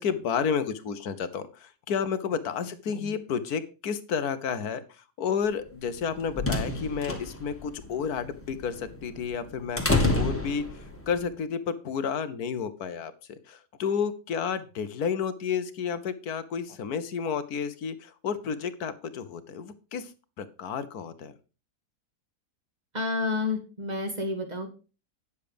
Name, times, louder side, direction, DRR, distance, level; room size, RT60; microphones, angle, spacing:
voice 1, 0.0-4.8 5.2-10.6 11.1-20.1 20.4-21.3, left 6 dB, 70° left, 12 dB, 1.4 m, -31 dB
sound 1, 5.8-11.1, left 2 dB, 10° left, 1.8 m, -29 dB
voice 2, 22.9-24.7, left 3 dB, 25° right, 4 dB, 2.2 m, -30 dB
9.9 x 7.0 x 5.1 m, 0.35 s
omnidirectional pair, 1.7 m